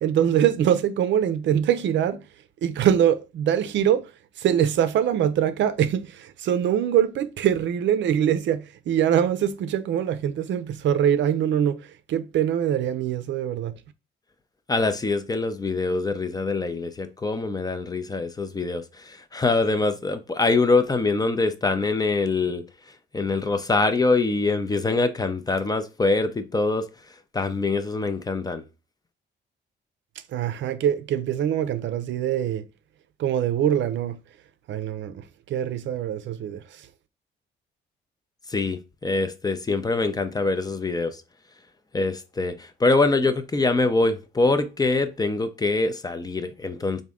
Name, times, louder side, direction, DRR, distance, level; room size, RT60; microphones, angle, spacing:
voice 1, 0.0-2.2 2.6-4.0 4.4-11.8 12.1-13.7 30.3-32.6 33.2-34.2 34.7-36.6, right 9 dB, 70° right, 0.5 m, -23 dB
voice 2, 14.7-22.7 23.1-26.9 27.3-28.6 38.5-41.2 41.9-47.0, left 3 dB, 20° left, 0.5 m, -24 dB
3.6 x 2.6 x 3.4 m
cardioid pair, 90°, 20 cm